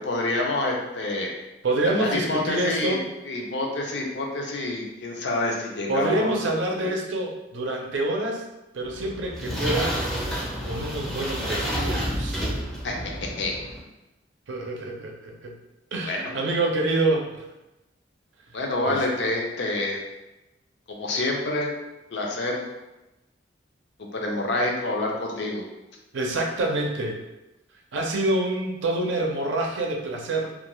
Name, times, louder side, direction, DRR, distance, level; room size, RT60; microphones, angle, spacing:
voice 1, 0.0-1.3 2.0-3.0 3.3-6.3 12.8-12.9 13.4-13.6 16.0-16.3 18.5-20.0 20.9-21.7 22.1-22.7 24.0-25.7, left 2 dB, 65° left, 0 dB, 0.5 m, -27 dB
voice 2, 1.6-3.0 5.9-8.4 8.7-10.0 10.6-12.5 14.5-15.5 15.9-17.5 18.9-19.0 26.1-27.2 27.9-30.5, right 2 dB, 75° right, 1 dB, 0.5 m, -27 dB
sound 1, 8.9-13.8, equal, ahead, 0.5 m, -29 dB
2.4 x 2.2 x 3.0 m, 0.99 s
head